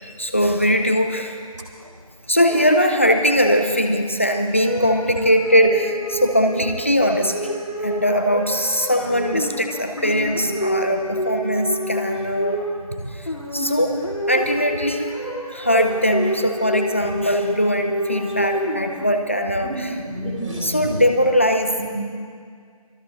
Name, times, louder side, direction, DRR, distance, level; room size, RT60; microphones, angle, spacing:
voice 1, 0.0-1.4 2.3-7.4 7.8-12.6 13.1-14.0 14.3-15.1 15.5-20.0 20.6-21.8, equal, 20° left, 5 dB, 0.6 m, -20 dB
sound 1, 2.5-3.4 4.6-19.4, equal, 60° left, 2.9 m, -28 dB
voice 2, 19.6-21.0 21.8-21.9, right 1 dB, 55° right, 0 dB, 3.3 m, -30 dB
25.5 x 18.0 x 2.6 m, 2.1 s
figure-of-eight pair, 170°, 19 cm